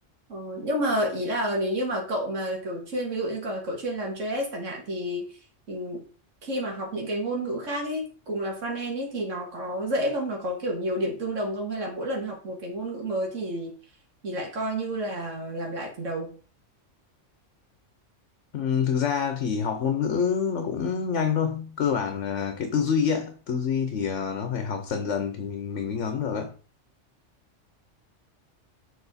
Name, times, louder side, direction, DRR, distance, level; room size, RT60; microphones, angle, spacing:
voice 1, 0.3-5.3 5.7-6.0 6.4-13.8 14.2-16.4, right 1 dB, 85° right, 2.0 m, -30 dB
voice 2, 18.5-26.5, left 7 dB, 70° left, 1.1 m, -27 dB
6.9 x 4.4 x 4.1 m
omnidirectional pair, 1.3 m